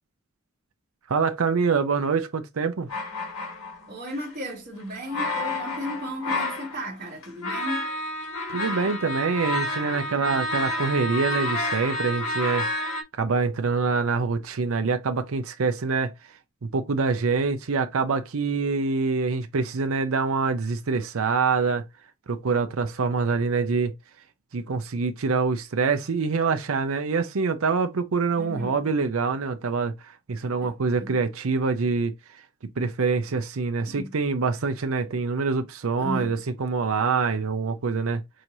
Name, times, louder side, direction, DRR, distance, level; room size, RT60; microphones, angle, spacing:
voice 1, 1.1-2.9 8.5-12.7 13.2-16.1 16.6-21.8 22.3-23.9 24.5-29.9 30.3-32.1 32.8-38.2, right 4 dB, 75° right, 0.6 m, -25 dB
sound 1, 2.9-4.1 5.0-6.9 7.2-13.0, left 1 dB, 75° left, 1.6 m, -30 dB
voice 2, 3.9-7.9 28.4-28.8 30.4-30.7 31.0-31.2 33.9-34.1 36.0-36.3, equal, 40° right, 1.5 m, -35 dB
6.3 x 2.7 x 2.9 m
head